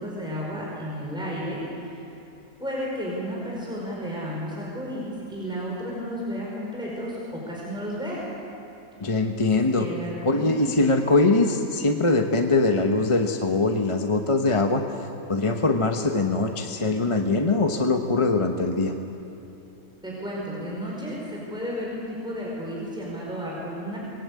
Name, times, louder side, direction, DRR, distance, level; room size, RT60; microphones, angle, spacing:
voice 1, 0.0-2.0 2.6-8.2 9.2-9.3 9.7-10.7 20.0-24.0, equal, 5° right, -4 dB, 4.8 m, -32 dB
voice 2, 9.0-9.9 10.2-14.8 15.3-18.9, left 3 dB, 25° left, 4 dB, 1.0 m, -22 dB
25.0 x 21.0 x 8.4 m, 2.9 s
omnidirectional pair, 1.4 m